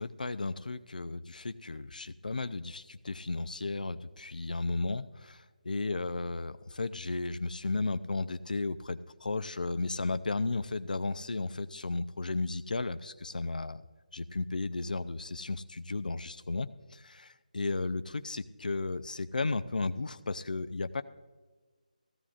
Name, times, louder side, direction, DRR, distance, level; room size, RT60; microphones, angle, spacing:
voice 1, 0.0-13.8 14.1-21.0, left 3 dB, 80° left, 12 dB, 0.5 m, -34 dB
15.5 x 13.0 x 2.5 m, 1.3 s
figure-of-eight pair, 165°, 4 cm